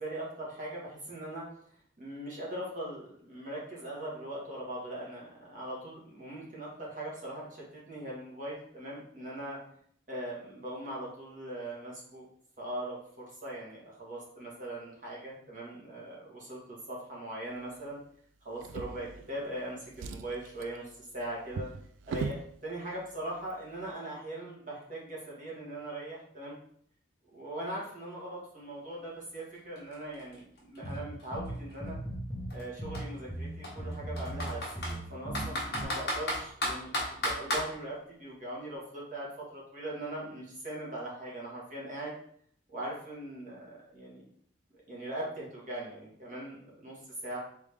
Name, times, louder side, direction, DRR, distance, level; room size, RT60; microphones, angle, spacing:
voice 1, 0.0-1.5 2.0-9.6 10.1-12.3 12.6-18.0 18.4-21.7 22.1-26.6 27.3-32.0 32.5-42.1 42.7-44.2 44.9-47.4, right 1 dB, 40° right, -5 dB, 1.4 m, -40 dB
Drawer open or close, 18.6-19.6 19.9-22.5 23.4-23.5 23.9-24.0, right 4 dB, 80° right, 0.3 m, -40 dB
Computer keyboard, 29.4-29.5 29.8-31.7 32.5-32.6 32.9-33.0 33.6-35.0 35.3-37.7, left 1 dB, 55° left, 1.2 m, -33 dB
sound 1, 30.8-32.5 32.8-35.8, right 1 dB, 15° left, 0.9 m, -38 dB
3.7 x 3.5 x 3.3 m, 0.64 s
head